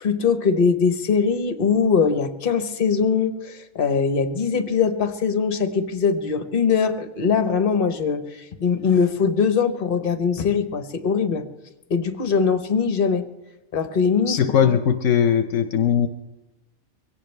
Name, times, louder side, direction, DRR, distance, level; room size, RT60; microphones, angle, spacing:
voice 1, 0.0-11.4 11.9-13.3 13.7-14.4, left 6 dB, 45° left, 9 dB, 1.1 m, -21 dB
voice 2, 14.2-16.1, left 8 dB, 75° left, 9 dB, 1.0 m, -19 dB
22.5 x 17.5 x 3.3 m, 1.0 s
omnidirectional pair, 1.3 m